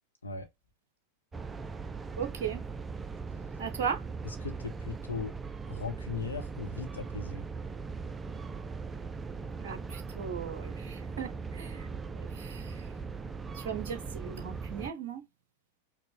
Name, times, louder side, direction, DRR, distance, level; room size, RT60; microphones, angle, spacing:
sound 1, 1.3-14.9, right 4 dB, 15° right, 0.4 m, -40 dB
voice 1, 2.2-2.6 3.6-4.0 9.6-12.9 13.5-15.2, right 7 dB, 55° right, 0.6 m, -37 dB
voice 2, 4.4-5.3 5.7-7.4, left 4 dB, 80° left, 1.1 m, -38 dB
5.2 x 2.8 x 3.1 m
figure-of-eight pair, 90°, 0 cm